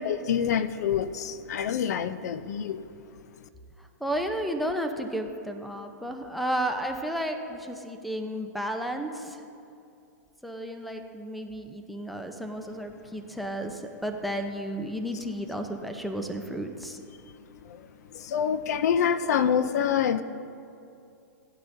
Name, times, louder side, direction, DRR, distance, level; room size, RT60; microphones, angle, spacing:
voice 1, 0.0-2.8 17.6-20.2, left 8 dB, 60° left, 13 dB, 0.5 m, -26 dB
voice 2, 3.8-9.4 10.4-17.0, equal, ahead, 6 dB, 0.7 m, -33 dB
17.5 x 10.5 x 2.7 m, 2.6 s
hypercardioid pair, 130°, 10 cm